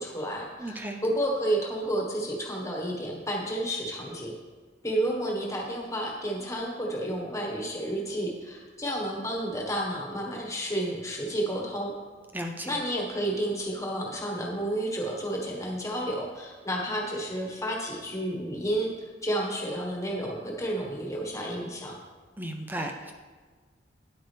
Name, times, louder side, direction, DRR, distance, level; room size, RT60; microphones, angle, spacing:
voice 1, 0.0-4.3 4.8-11.9 12.6-22.0, right 1 dB, 15° left, 0 dB, 1.4 m, -31 dB
voice 2, 0.6-1.0 12.3-12.8 22.4-23.1, right 1 dB, 10° right, 4 dB, 0.5 m, -35 dB
9.5 x 8.6 x 3.4 m, 1.5 s
head